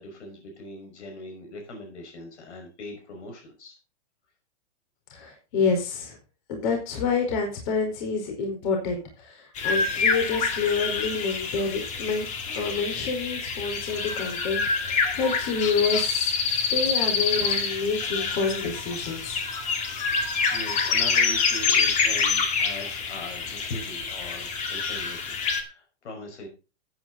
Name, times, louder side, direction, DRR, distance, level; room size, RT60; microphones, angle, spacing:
voice 1, 0.0-3.8 19.8-20.0 20.5-26.5, left 2 dB, 80° left, 3 dB, 5.6 m, -40 dB
voice 2, 5.1-6.2 6.5-12.3 12.5-19.4, left 4 dB, 45° left, 2 dB, 4.7 m, -28 dB
sound 1, 9.6-25.6, left 5 dB, 20° left, 2.0 m, -27 dB
13.5 x 9.5 x 4.0 m, 0.31 s
hypercardioid pair, 160°, 35 cm